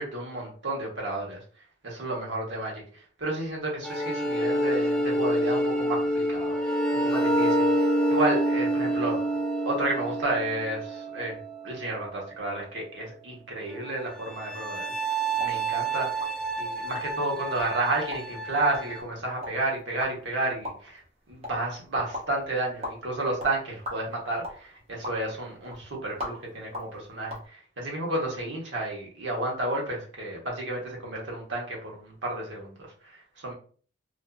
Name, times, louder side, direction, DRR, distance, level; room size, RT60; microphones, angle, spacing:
voice 1, 0.0-1.4 1.8-2.8 3.2-6.6 6.9-7.7 8.1-9.2 9.6-11.4 11.6-16.2 16.6-21.0 21.3-32.7 33.0-33.2 33.4-33.5, right 2 dB, 85° right, -2 dB, 1.0 m, -31 dB
sound 1, 3.8-11.8 13.7-19.0, right 1 dB, 5° left, 0.3 m, -27 dB
sound 2, 15.3-27.5, left 1 dB, 35° right, 0.7 m, -43 dB
2.5 x 2.4 x 2.3 m, 0.43 s
head